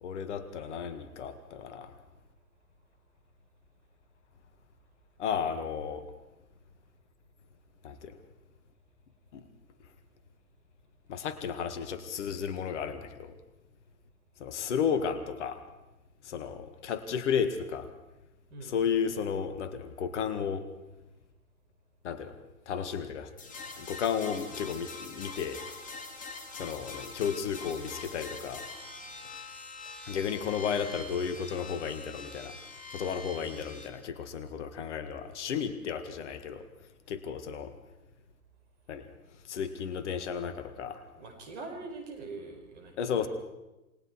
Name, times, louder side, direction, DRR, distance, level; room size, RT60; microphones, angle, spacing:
voice 1, 0.0-1.9 5.2-6.0 7.8-8.2 9.3-9.4 11.1-13.3 14.4-15.6 16.2-17.9 18.7-20.7 22.0-22.4 22.7-23.3 23.8-25.6 26.5-28.6 30.1-32.6 32.9-36.6 37.1-37.7 38.9-39.1 39.5-41.0 43.0-43.3, left 7 dB, 50° left, 11 dB, 1.9 m, -33 dB
sound 1, 23.4-33.9, left 3 dB, 20° left, 2.6 m, -44 dB
voice 2, 41.2-43.3, right 3 dB, 50° right, 4 dB, 5.2 m, -43 dB
28.5 x 20.0 x 4.7 m, 1.0 s
figure-of-eight pair, 105°, 44 cm